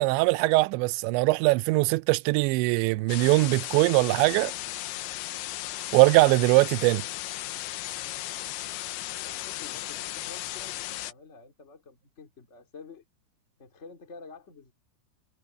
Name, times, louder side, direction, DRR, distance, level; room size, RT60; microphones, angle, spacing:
voice 1, 0.0-4.5 5.9-7.0, right 23 dB, 85° right, 2.7 m, -21 dB
sound 1, 3.1-11.1, left 15 dB, 80° left, 3.2 m, -36 dB
voice 2, 7.8-8.3 8.7-13.0 13.6-14.7, left 4 dB, 20° left, 2.3 m, -50 dB
omnidirectional pair, 5.5 m